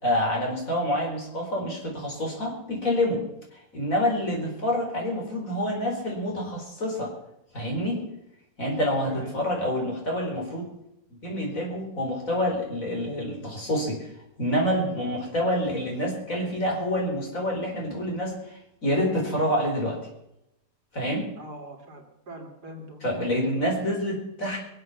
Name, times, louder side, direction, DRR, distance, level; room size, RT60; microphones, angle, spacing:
voice 1, 0.0-3.2 3.7-7.1 7.5-8.0 8.6-10.7 11.2-14.1 14.4-20.0 20.9-21.3 23.0-24.6, equal, 50° left, 0 dB, 5.0 m, -27 dB
voice 2, 9.0-9.4 21.4-23.7, right 1 dB, 70° right, 3 dB, 3.3 m, -43 dB
23.5 x 8.0 x 7.2 m, 0.83 s
omnidirectional pair, 1.8 m